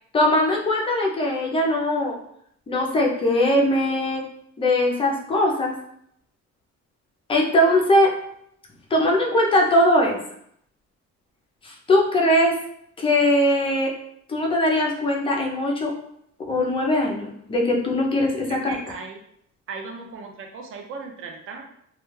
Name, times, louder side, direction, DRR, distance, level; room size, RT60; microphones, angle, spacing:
voice 1, 0.1-2.2 2.7-4.2 4.6-5.7 7.3-8.1 8.9-10.2 11.6-12.6 13.0-13.9 14.3-15.9 16.5-18.7, left 1 dB, 20° left, -1 dB, 0.4 m, -20 dB
voice 2, 18.5-19.2 19.7-21.6, right 4 dB, 45° right, 3 dB, 0.5 m, -37 dB
2.2 x 2.2 x 3.0 m, 0.70 s
cardioid pair, 155°, 29 cm